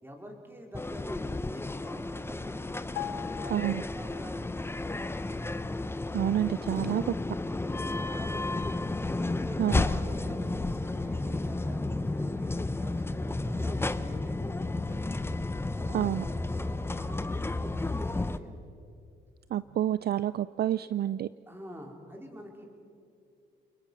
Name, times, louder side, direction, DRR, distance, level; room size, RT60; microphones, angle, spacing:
voice 1, 0.0-2.6 3.2-5.5 7.5-8.6 9.1-15.1 15.7-18.6 21.5-22.7, equal, 10° right, 1 dB, 4.3 m, -47 dB
sound 1, 0.7-18.4, left 2 dB, 10° left, 0.8 m, -32 dB
sound 2, 3.0-4.6 4.9-5.1, left 12 dB, 90° left, 1.1 m, -41 dB
voice 2, 3.5-3.8 6.1-7.0 9.6-9.8 15.9-16.2 19.5-21.3, right 11 dB, 55° right, 16 dB, 0.4 m, -28 dB
29.5 x 21.0 x 6.2 m, 2.4 s
cardioid pair, 90°, 20 cm